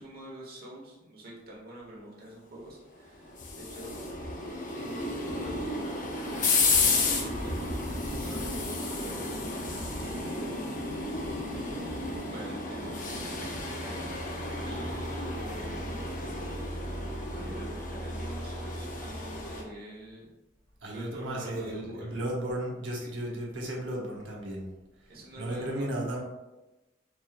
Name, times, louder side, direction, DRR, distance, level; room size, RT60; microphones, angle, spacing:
voice 1, 0.0-3.9 4.7-7.6 8.0-9.2 10.0-10.7 12.0-14.0 14.6-16.2 17.1-20.3 20.9-22.1 22.9-23.1 25.1-25.9 26.1-26.2, right 1 dB, 55° right, -4 dB, 1.2 m, -46 dB
sound 1, 3.0-19.6, left 3 dB, 45° left, 0.6 m, -32 dB
voice 2, 20.8-24.7 25.4-26.2, right 1 dB, 85° right, -2 dB, 1.0 m, -34 dB
4.4 x 3.1 x 2.4 m, 1.0 s
head